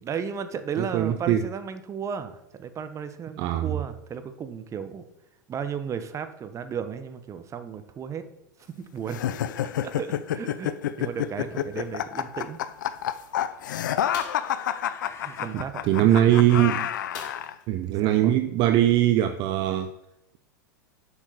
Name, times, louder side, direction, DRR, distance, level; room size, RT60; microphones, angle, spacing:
voice 1, 0.0-5.0 5.5-8.2 8.8-9.2 9.5-12.6 15.2-15.8 16.6-16.8 18.0-18.4, right 7 dB, 30° right, 10 dB, 1.2 m, -34 dB
voice 2, 0.8-1.5 3.4-3.7 15.5-16.9 17.7-19.9, right 12 dB, 50° right, 9 dB, 0.6 m, -21 dB
sound 1, 9.1-17.5, left 10 dB, 75° left, 0.6 m, -29 dB
sound 2, 11.5-11.9 12.9-15.6, left 4 dB, 25° left, 1.6 m, -48 dB
sound 3, 14.1-14.5 17.1-17.7 18.1-18.2 18.6-18.7, left 5 dB, 60° left, 3.0 m, -41 dB
7.9 x 6.2 x 6.6 m, 0.84 s
hypercardioid pair, 95°, 10 cm